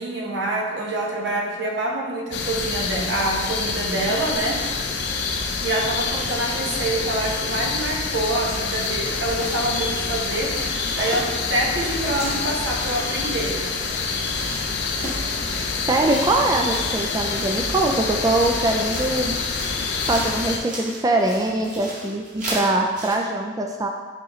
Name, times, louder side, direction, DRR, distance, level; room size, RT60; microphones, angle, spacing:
voice 1, 0.0-4.6 5.6-13.6, right 1 dB, 75° right, -1 dB, 1.1 m, -26 dB
sound 1, 2.3-20.6, left 4 dB, 65° left, 0.6 m, -27 dB
sound 2, 8.6-23.1, right 1 dB, 45° right, 1.9 m, -37 dB
voice 2, 15.9-19.3 20.1-23.9, right 2 dB, 20° right, 2 dB, 0.4 m, -22 dB
9.6 x 3.7 x 3.1 m, 1.4 s
head